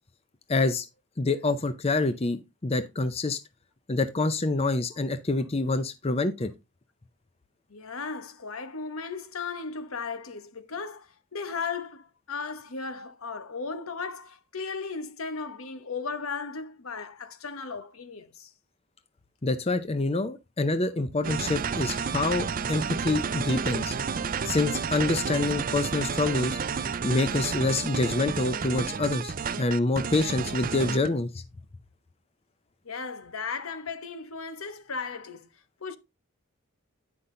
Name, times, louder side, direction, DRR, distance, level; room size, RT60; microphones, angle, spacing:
voice 1, 0.5-0.9 1.2-3.4 3.9-6.5 19.4-24.0 24.5-26.6 27.0-31.4, left 2 dB, 30° left, 0.6 m, -26 dB
voice 2, 7.7-18.5 32.8-35.5 35.8-36.0, left 4 dB, 80° left, 1.1 m, -36 dB
sound 1, 21.2-31.1, right 6 dB, 40° right, 0.5 m, -31 dB
9.8 x 5.6 x 3.8 m
head